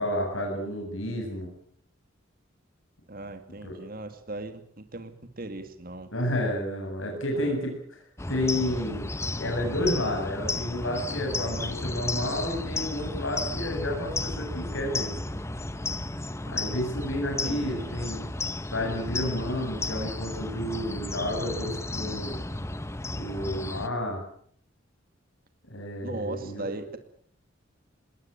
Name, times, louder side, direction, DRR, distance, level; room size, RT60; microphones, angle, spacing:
voice 1, 0.0-1.5 3.6-3.7 6.1-8.0 8.3-9.1 9.4-15.2 16.5-18.2 18.7-22.4 23.1-24.2 25.7-26.7, left 1 dB, 85° left, 2 dB, 7.3 m, -31 dB
voice 2, 3.1-5.1 5.4-6.1 7.3-7.6 17.4-18.0 26.0-27.0, right 2 dB, 45° right, 8 dB, 2.4 m, -38 dB
sound 1, 8.2-23.9, left 2 dB, 15° left, 1.0 m, -33 dB
21.5 x 19.5 x 8.9 m, 0.63 s
head